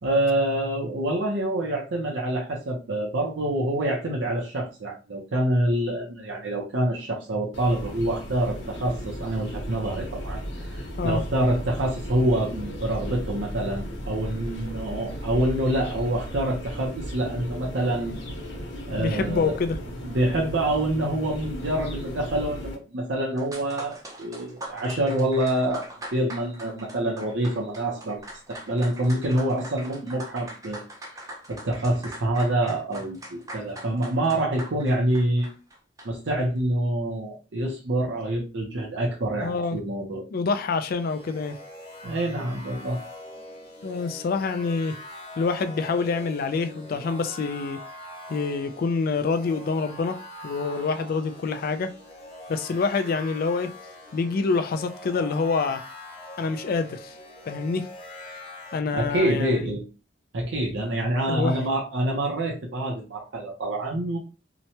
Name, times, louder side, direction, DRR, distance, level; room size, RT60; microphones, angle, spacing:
voice 1, 0.0-18.2 18.9-19.6 20.0-30.8 31.1-31.2 31.5-35.5 36.0-40.2 42.0-43.0 58.9-59.8 60.3-64.2, right 1 dB, 80° right, 0.7 m, -26 dB
sound 1, 7.5-22.7, equal, 85° left, 1.0 m, -36 dB
voice 2, 19.0-19.8 39.4-39.8 40.3-41.6 43.8-45.0 45.4-47.8 48.3-50.2 50.4-51.9 52.5-53.7 54.1-55.8 56.4-57.1 57.5-57.9 58.7-59.8 61.3-61.6, left 4 dB, 55° left, 0.4 m, -26 dB
sound 2, 23.4-36.3, right 1 dB, 20° right, 0.5 m, -42 dB
sound 3, 40.8-58.8, left 1 dB, 30° left, 1.2 m, -43 dB
2.9 x 2.1 x 2.8 m
head